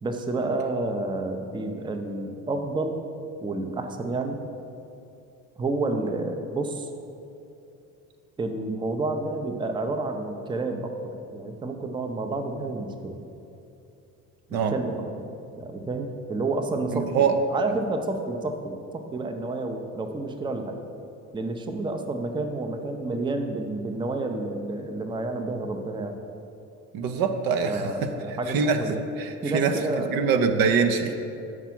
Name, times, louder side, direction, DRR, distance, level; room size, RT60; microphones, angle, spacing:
voice 1, 0.0-3.1 3.4-4.4 5.6-6.9 8.4-13.2 14.5-15.3 15.6-20.8 21.3-26.2 27.7-29.0 29.4-30.2, right 2 dB, 10° right, 5 dB, 0.5 m, -30 dB
voice 2, 16.9-17.4 26.9-28.1 28.5-28.8 29.2-31.1, right 6 dB, 60° right, 6 dB, 0.7 m, -24 dB
5.8 x 4.7 x 5.9 m, 2.7 s
hypercardioid pair, 70°, 41 cm